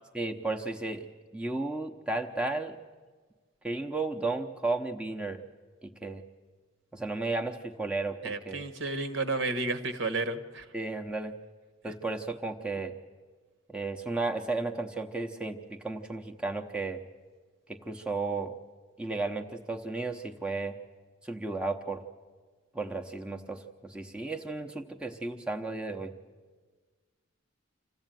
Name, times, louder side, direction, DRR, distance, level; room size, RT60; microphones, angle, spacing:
voice 1, 0.1-1.1 1.3-2.8 3.6-5.4 5.8-6.2 6.9-8.6 10.7-11.3 11.8-12.9 13.7-17.0 17.7-18.5 19.0-20.7 21.2-22.0 22.7-26.1, right 3 dB, 5° right, 2 dB, 0.9 m, -34 dB
voice 2, 8.2-10.7, right 3 dB, 60° right, 11 dB, 1.4 m, -32 dB
26.0 x 15.0 x 9.1 m, 1.4 s
head